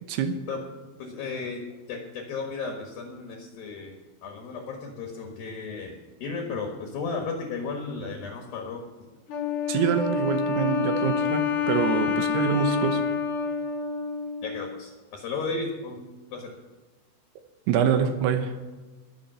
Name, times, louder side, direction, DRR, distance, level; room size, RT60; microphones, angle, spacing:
voice 1, 1.0-1.6 1.9-3.9 4.2-8.8 14.4-16.0 16.3-16.5, left 4 dB, 60° left, 3 dB, 2.8 m, -34 dB
Wind instrument woodwind instrument, 9.3-14.7, left 5 dB, 80° left, 1.8 m, -27 dB
voice 2, 9.7-13.0 17.7-18.5, right 8 dB, 75° right, 7 dB, 2.5 m, -25 dB
21.0 x 7.2 x 5.7 m, 1.3 s
omnidirectional pair, 5.9 m